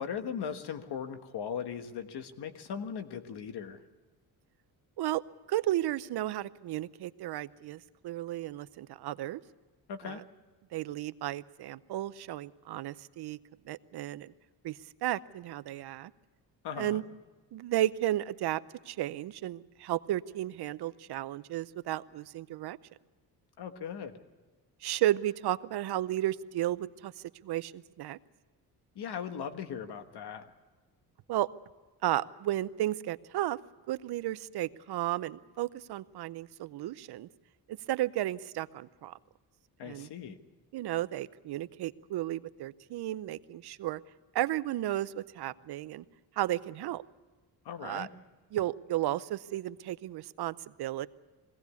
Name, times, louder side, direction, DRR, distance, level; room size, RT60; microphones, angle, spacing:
voice 1, 0.0-3.8 9.9-10.2 16.6-17.0 23.6-24.1 28.9-30.4 39.8-40.4 47.6-48.1, left 7 dB, 75° left, 9 dB, 1.5 m, -38 dB
voice 2, 5.5-9.4 10.0-10.2 10.7-13.4 13.7-14.3 14.6-16.1 16.8-17.0 17.5-22.8 24.8-28.2 31.3-31.5 32.0-33.6 33.9-37.3 37.7-39.1 39.8-40.1 40.7-44.0 44.3-46.0 46.4-47.0 47.8-48.1 48.5-51.1, right 14 dB, 75° right, 16 dB, 0.7 m, -33 dB
21.0 x 17.0 x 8.3 m, 1.3 s
cardioid pair, 105°, 39 cm